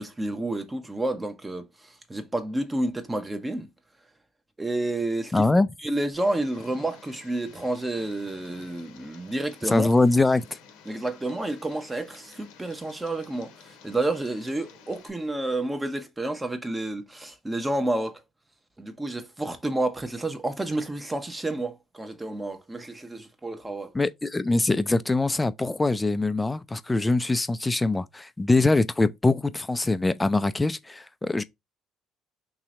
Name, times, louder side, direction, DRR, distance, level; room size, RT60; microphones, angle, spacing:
voice 1, 0.0-3.7 4.6-5.5 5.8-9.9 10.9-18.2 18.8-23.9, right 2 dB, 15° right, 0.9 m, -30 dB
voice 2, 5.3-5.7 9.7-10.4 23.9-31.4, left 2 dB, 15° left, 0.4 m, -23 dB
Tick, 6.1-15.1, left 6 dB, 80° left, 0.8 m, -52 dB
3.2 x 2.8 x 3.7 m
supercardioid pair, 65°, 0 cm